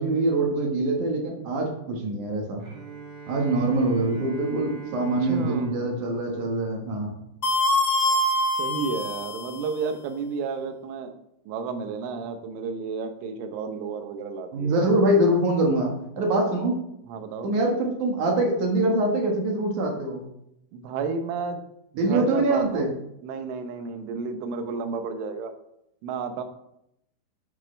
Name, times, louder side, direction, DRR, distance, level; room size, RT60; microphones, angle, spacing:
voice 1, 0.0-2.6 3.3-7.1 14.5-16.8 17.4-20.3 22.0-22.9, right 1 dB, 55° right, 0 dB, 2.4 m, -24 dB
Bowed string instrument, 2.6-7.5, right 5 dB, 40° right, 3.0 m, -43 dB
voice 2, 5.0-5.8 8.6-11.1 11.5-15.0 17.1-17.5 20.7-21.6 21.9-22.9 23.2-25.5 26.0-26.4, right 5 dB, 85° right, 7 dB, 3.5 m, -32 dB
sound 1, 7.4-9.8, left 1 dB, 35° left, 1.5 m, -24 dB
11.0 x 9.7 x 3.4 m, 0.80 s
omnidirectional pair, 5.5 m